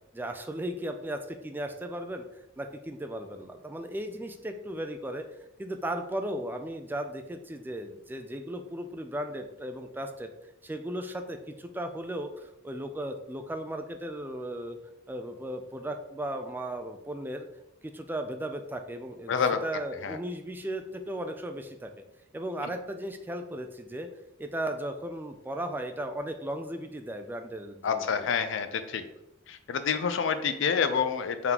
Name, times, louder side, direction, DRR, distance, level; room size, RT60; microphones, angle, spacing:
voice 1, 0.1-2.2 2.6-5.2 5.6-10.3 10.6-14.8 15.1-17.5 17.8-19.3 19.6-21.9 22.3-24.1 24.4-28.0, right 1 dB, 10° right, 6 dB, 0.3 m, -36 dB
voice 2, 19.3-19.6 20.0-20.2 27.8-29.0 29.5-31.5, left 6 dB, 70° left, 10 dB, 0.4 m, -27 dB
3.7 x 3.6 x 2.9 m, 0.88 s
head